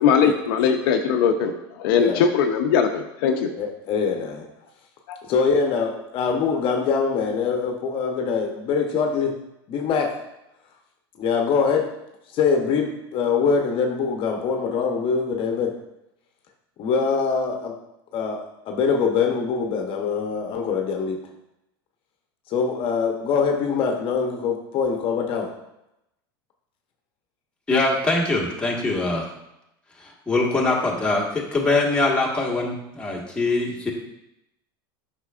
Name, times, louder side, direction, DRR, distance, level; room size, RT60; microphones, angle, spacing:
voice 1, 0.0-1.5 1.8-3.5 5.1-5.2, left 7 dB, 75° left, 5 dB, 0.7 m, -20 dB
voice 2, 3.6-4.5 5.3-9.3 9.7-10.1 11.2-11.9 12.3-15.7 16.8-17.8 18.1-21.2 22.5-25.5, left 5 dB, 45° left, 3 dB, 0.9 m, -23 dB
voice 3, 27.7-29.3 30.0-33.9, left 2 dB, 10° left, -3 dB, 1.6 m, -23 dB
8.0 x 5.9 x 2.5 m, 0.87 s
supercardioid pair, 110°, 12 cm